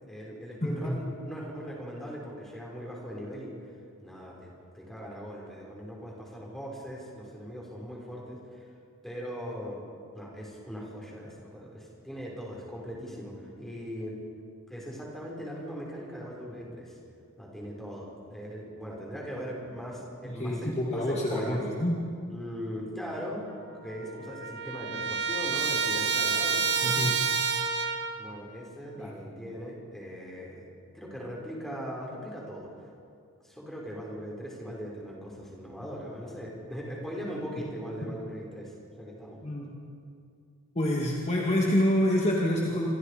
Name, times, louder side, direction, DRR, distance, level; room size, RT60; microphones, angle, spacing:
voice 1, 0.1-3.7 4.0-8.7 9.0-9.8 10.1-14.2 14.7-17.0 17.4-21.6 22.3-23.5 23.8-27.0 28.2-32.7 33.4-39.4, equal, ahead, -3 dB, 6.1 m, -40 dB
voice 2, 0.6-1.0 20.2-22.0 26.8-27.1 29.0-29.1 39.4-39.7 40.8-42.9, left 1 dB, 30° left, -2 dB, 2.3 m, -27 dB
Trumpet, 23.5-23.6 23.8-28.3, right 6 dB, 50° right, 1.6 m, -29 dB
28.0 x 26.5 x 5.3 m, 2.4 s
head